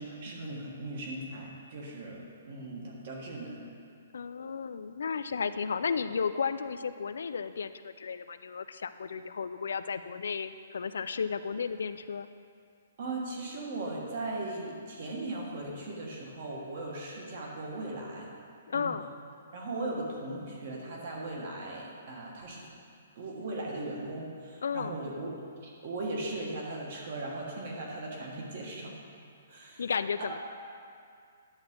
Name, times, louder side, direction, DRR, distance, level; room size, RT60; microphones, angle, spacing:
voice 1, 0.0-3.6 13.0-18.3 18.7-18.9 19.5-22.6 23.2-25.3 25.8-28.9 29.5-29.8 30.2-30.4, right 2 dB, 40° right, -2 dB, 1.5 m, -38 dB
voice 2, 4.1-12.3 17.3-17.4 18.7-19.1 24.6-25.0 29.8-30.4, left 6 dB, 80° left, 11 dB, 0.3 m, -33 dB
10.5 x 7.3 x 3.7 m, 2.3 s
hypercardioid pair, 180°, 0 cm